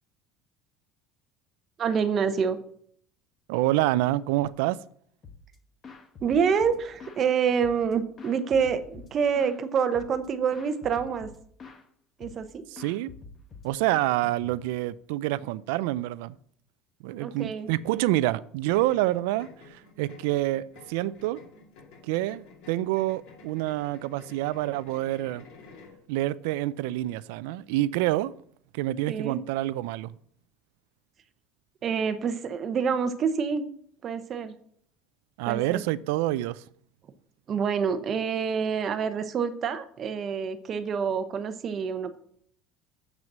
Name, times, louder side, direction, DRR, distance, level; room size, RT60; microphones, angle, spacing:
voice 1, 1.8-2.6 6.2-11.3 12.2-12.6 17.1-17.7 29.1-29.4 31.8-33.6 34.0-34.5 35.5-35.8 37.5-42.2, right 6 dB, 30° right, 0.7 m, -27 dB
voice 2, 3.5-4.8 12.7-13.1 13.6-16.4 17.0-21.4 22.0-25.4 26.1-28.3 28.7-30.1 35.4-36.6, right 16 dB, 90° right, 0.4 m, -27 dB
sound 1, 5.2-5.6 5.8-7.3 7.6-9.6 9.9-10.3 10.5-11.8 12.2-12.5 12.8-14.8, left 4 dB, 25° left, 1.1 m, -47 dB
sound 2, 18.7-26.0, left 4 dB, 70° left, 2.5 m, -51 dB
7.5 x 6.3 x 7.3 m
cardioid pair, 175°, 0 cm